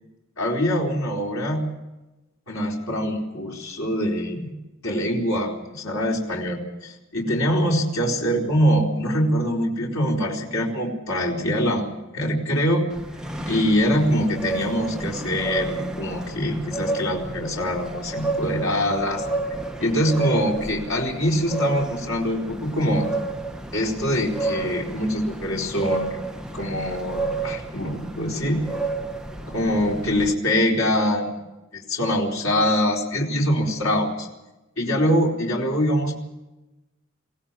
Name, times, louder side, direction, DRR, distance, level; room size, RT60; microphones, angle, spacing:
voice 1, 0.4-1.7 2.5-4.5 4.8-12.8 13.5-19.3 19.8-23.1 23.7-26.2 26.5-28.6 29.5-31.4 31.7-34.3 34.8-36.2, equal, 80° left, -1 dB, 4.2 m, -24 dB
sound 1, 12.9-30.3, right 2 dB, 5° right, 1.1 m, -31 dB
23.5 x 17.0 x 7.3 m, 1.0 s
head